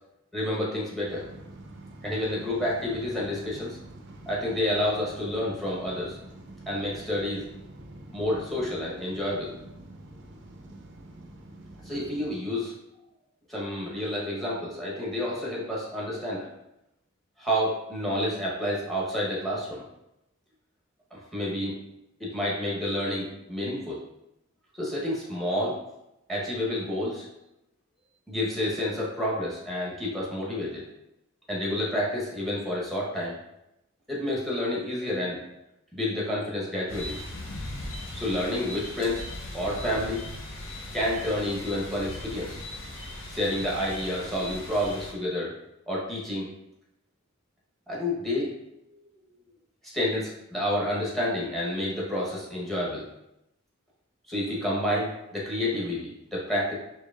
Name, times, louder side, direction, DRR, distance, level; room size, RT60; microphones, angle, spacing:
voice 1, 0.3-1.3 2.0-3.8 4.3-6.2 6.7-7.4 8.1-9.5 10.7-10.8 11.8-12.7 13.5-16.5 17.4-19.8 21.1-21.8 22.2-24.0 24.8-25.8 26.3-27.3 28.3-30.8 31.5-33.3 34.1-35.4 35.9-37.1 38.1-39.2 39.5-40.2 40.9-42.6 43.3-45.6 45.9-46.5 47.9-48.5 49.8-53.0 54.3-56.7, left 1 dB, ahead, -5 dB, 0.9 m, -29 dB
sound 1, 1.1-12.3, right 1 dB, 60° right, 0.4 m, -46 dB
sound 2, 36.9-45.1, left 1 dB, 60° left, 0.6 m, -39 dB
4.5 x 2.8 x 2.4 m, 0.87 s
head